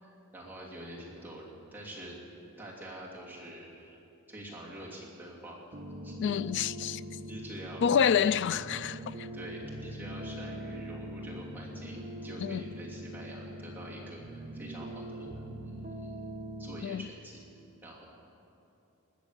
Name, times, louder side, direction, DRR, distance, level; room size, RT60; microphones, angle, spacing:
voice 1, 0.0-2.2 2.6-4.0 4.3-5.6 6.0-6.1 7.3-7.8 9.3-15.3 15.6-16.1 16.6-17.4 17.8-18.1, right 1 dB, 10° right, 2.8 m, -46 dB
sound 1, 5.7-16.9, equal, 40° right, 1.1 m, -42 dB
voice 2, 6.2-7.0 7.8-9.3 12.4-12.6 16.8-17.0, left 7 dB, 55° left, 0.3 m, -28 dB
20.5 x 7.1 x 8.2 m
head